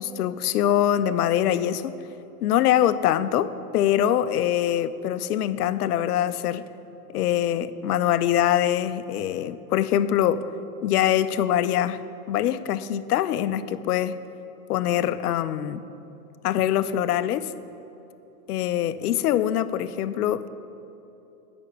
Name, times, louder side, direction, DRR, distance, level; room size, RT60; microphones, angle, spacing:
voice 1, 0.0-1.9 2.4-6.7 7.1-10.5 10.8-12.0 12.3-14.2 14.7-15.9 16.4-17.5 18.5-20.5, left 11 dB, 80° left, 15 dB, 0.6 m, -23 dB
8.5 x 6.0 x 6.4 m, 2.9 s
hypercardioid pair, 115°, 46 cm